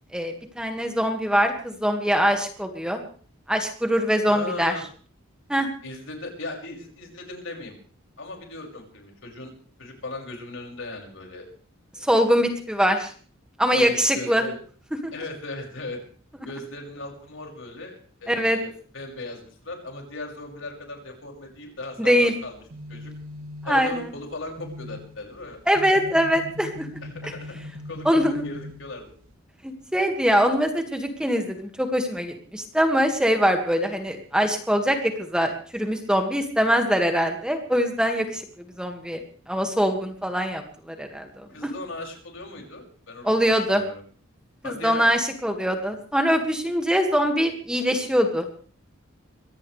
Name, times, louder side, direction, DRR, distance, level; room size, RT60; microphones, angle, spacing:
voice 1, 0.1-3.0 3.5-4.7 5.5-5.7 12.0-13.1 13.6-14.4 15.0-15.1 18.3-18.6 22.0-22.3 23.7-24.1 25.7-26.9 27.2-27.3 28.1-28.5 29.6-38.5 38.8-41.7 43.2-43.8 44.6-48.5, equal, 5° right, 4 dB, 1.9 m, -23 dB
voice 2, 4.3-4.8 5.8-7.7 8.2-9.5 9.8-11.5 12.0-12.1 13.7-14.6 15.1-16.0 16.4-22.6 22.9-23.1 23.6-25.6 27.0-29.1 41.5-44.0 44.6-45.1, left 2 dB, 65° left, 2 dB, 6.1 m, -37 dB
sound 1, 22.4-29.3, left 2 dB, 85° right, 3.0 m, -41 dB
23.5 x 17.0 x 3.3 m, 0.43 s
head